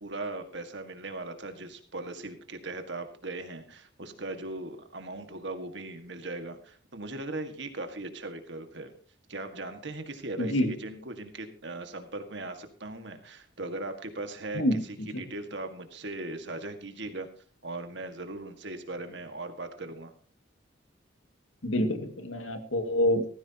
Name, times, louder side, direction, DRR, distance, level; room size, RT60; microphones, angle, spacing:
voice 1, 0.0-8.9 9.3-17.3 17.6-20.1, right 2 dB, 60° right, 6 dB, 1.8 m, -39 dB
voice 2, 10.4-10.7 14.5-15.1 21.6-23.3, left 1 dB, 80° left, 6 dB, 2.2 m, -27 dB
17.0 x 15.0 x 2.9 m, 0.43 s
head